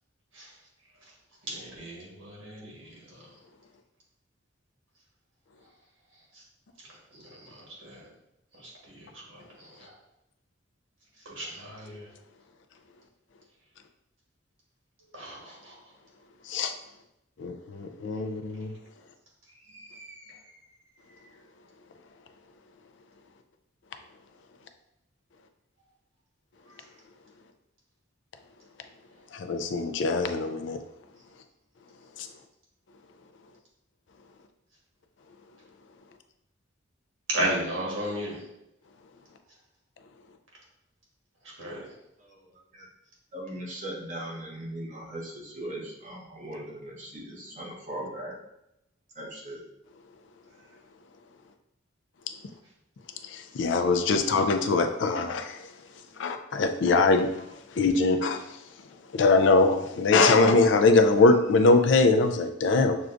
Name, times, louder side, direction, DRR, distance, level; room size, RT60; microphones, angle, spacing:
voice 1, 1.5-3.3 6.3-6.4 6.9-8.0 8.5-8.7 9.0-9.9 11.2-12.1 15.1-15.8 19.7-20.4 21.1-21.2 37.3-38.4 41.6-41.9, right 1 dB, 90° right, -3 dB, 1.4 m, -35 dB
voice 2, 17.4-18.7 29.3-30.8 32.2-32.3 53.2-55.6 56.2-57.3 57.7-58.4 59.1-63.0, left 3 dB, 65° left, 7 dB, 0.4 m, -22 dB
voice 3, 42.2-42.9 43.3-48.3 49.1-49.6, right 1 dB, 40° right, -4 dB, 0.9 m, -39 dB
6.1 x 2.3 x 2.5 m, 0.86 s
head